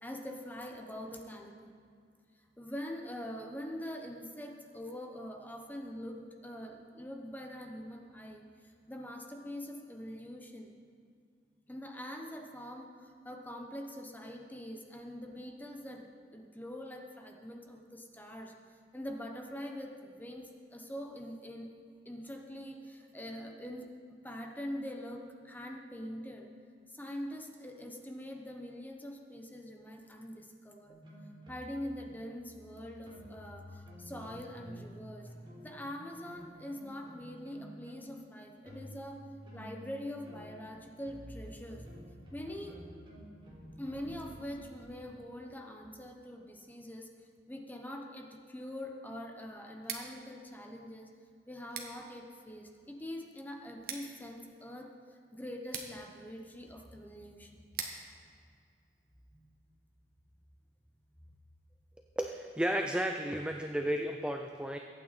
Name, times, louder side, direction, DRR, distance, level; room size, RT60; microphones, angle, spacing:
voice 1, 0.0-1.8 2.6-8.5 8.9-10.7 11.7-18.5 18.9-21.7 22.0-23.9 24.2-26.5 26.9-31.0 31.5-35.3 35.6-39.2 39.5-41.8 42.3-42.8 43.8-47.1 47.5-51.1 51.5-54.9 55.3-57.6 59.3-59.5, equal, 10° left, 2 dB, 1.0 m, -44 dB
sound 1, 30.9-34.9 35.3-44.8, equal, 30° right, 3.7 m, -51 dB
Scissors, 49.7-59.6, right 6 dB, 60° right, 1.5 m, -48 dB
voice 2, 62.2-64.8, equal, 5° right, 4 dB, 0.5 m, -33 dB
22.0 x 9.0 x 4.2 m, 2.2 s
head